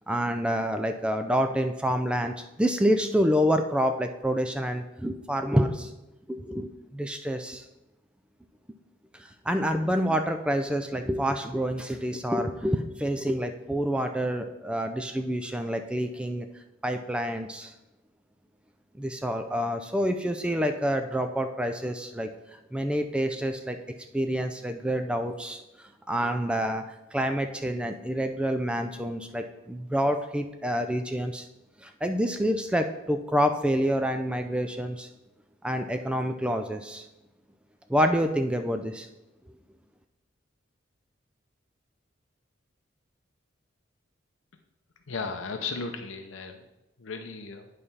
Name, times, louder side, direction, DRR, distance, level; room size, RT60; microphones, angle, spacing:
voice 1, 0.1-5.9 6.3-7.6 9.2-16.5 16.8-17.7 19.0-22.3 22.7-23.8 24.1-26.8 27.1-31.5 31.8-35.1 35.6-37.0 37.9-39.1, equal, 5° right, 7 dB, 0.4 m, -27 dB
voice 2, 45.1-46.7 47.0-47.7, left 4 dB, 85° left, 5 dB, 0.6 m, -35 dB
9.1 x 3.3 x 5.6 m, 0.98 s
head